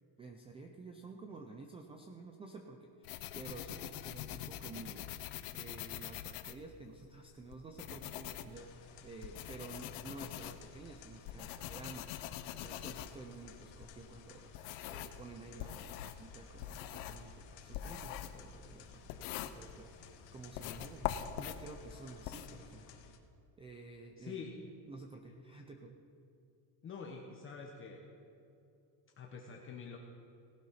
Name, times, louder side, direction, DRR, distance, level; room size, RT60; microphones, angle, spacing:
voice 1, 0.2-5.1 5.5-12.1 12.5-23.0 23.6-24.4 24.9-26.0, right 3 dB, 15° right, 3 dB, 0.3 m, -51 dB
sound 1, 3.0-7.0 7.5-15.2 15.6-20.1 20.5-22.5, left 12 dB, 80° left, 1.0 m, -44 dB
sound 2, 8.5-23.2, left 7 dB, 60° left, 1.6 m, -57 dB
voice 2, 24.2-24.5 26.8-28.0 29.2-30.0, left 5 dB, 25° left, 0 dB, 1.1 m, -46 dB
18.0 x 11.5 x 5.7 m, 2.7 s
cardioid pair, 170°, 50 cm